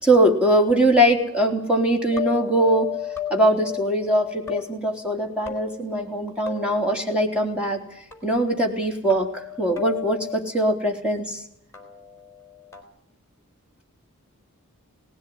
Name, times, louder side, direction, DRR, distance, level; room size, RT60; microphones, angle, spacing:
voice 1, 0.0-3.0 3.3-11.4, right 1 dB, 5° right, 0 dB, 3.5 m, -22 dB
sound 1, 2.1-4.6 5.4-6.2 6.5-6.9 8.1-8.2 9.1-10.4 11.7-12.8, left 10 dB, 10° left, 4.3 m, -34 dB
19.0 x 17.0 x 9.5 m, 0.68 s
head